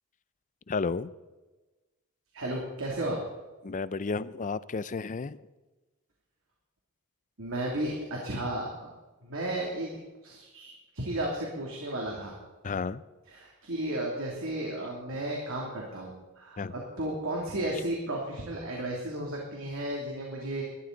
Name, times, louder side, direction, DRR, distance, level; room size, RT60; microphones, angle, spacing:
voice 1, 0.7-1.1 3.6-5.4 12.6-13.0 16.6-16.7, left 4 dB, 35° left, 17 dB, 0.5 m, -32 dB
voice 2, 2.3-3.2 7.4-8.9 9.2-9.9 10.2-12.4 13.3-20.6, right 1 dB, 60° right, -2 dB, 2.7 m, -34 dB
20.5 x 12.5 x 3.9 m, 1.2 s
head